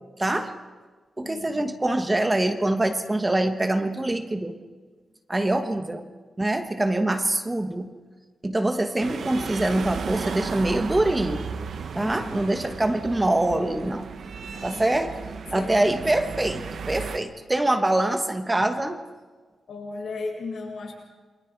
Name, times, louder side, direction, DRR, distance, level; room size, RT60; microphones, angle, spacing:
voice 1, 0.2-0.5 1.2-4.6 5.3-6.0 6.4-7.9 8.4-11.4 11.9-14.1 14.6-15.1 15.5-19.0, right 1 dB, 15° right, 7 dB, 1.2 m, -24 dB
voice 2, 1.2-1.8 5.4-5.9 12.0-12.7 14.5-15.1 15.5-15.9 19.7-20.9, left 3 dB, 85° left, -2 dB, 7.5 m, -37 dB
sound 1, 9.0-17.2, right 5 dB, 65° right, 1.2 m, -35 dB
28.5 x 23.5 x 4.6 m, 1.4 s
wide cardioid pair, 175°, 0 cm